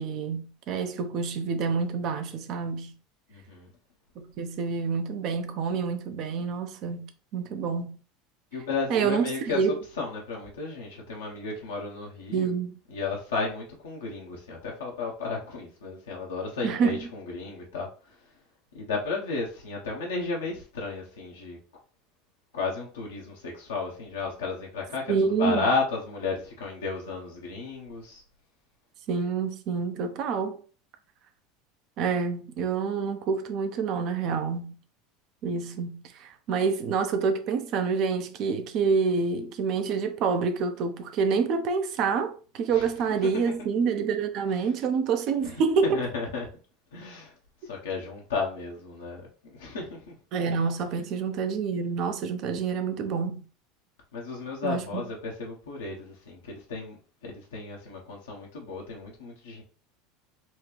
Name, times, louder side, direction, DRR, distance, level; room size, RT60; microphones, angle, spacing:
voice 1, 0.0-2.9 4.2-8.0 8.9-9.8 12.3-12.7 16.6-17.0 25.1-25.6 29.1-30.6 32.0-34.8 35.4-46.0 50.3-53.4 54.6-55.0, right 5 dB, 55° right, 0.7 m, -27 dB
voice 2, 3.3-3.7 8.5-9.6 10.0-12.5 12.9-18.2 18.7-21.6 22.5-25.1 25.4-28.2 42.7-42.9 45.4-45.5 45.9-46.5 46.9-47.3 47.6-50.0 54.1-57.0 57.2-59.6, left 4 dB, 85° left, 1.0 m, -33 dB
4.3 x 2.4 x 3.2 m
hypercardioid pair, 85°, 0 cm